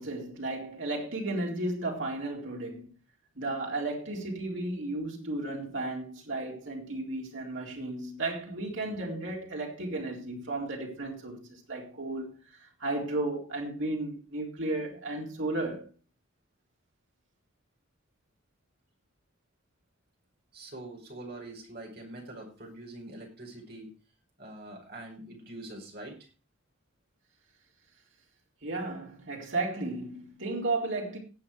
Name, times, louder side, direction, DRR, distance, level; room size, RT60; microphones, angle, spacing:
voice 1, 0.0-2.9 3.4-15.9 28.6-31.2, right 2 dB, 70° right, 4.0 m, -34 dB
voice 2, 20.5-23.9 24.4-26.2, right 1 dB, 50° right, 5.1 m, -44 dB
18.0 x 7.6 x 4.7 m
head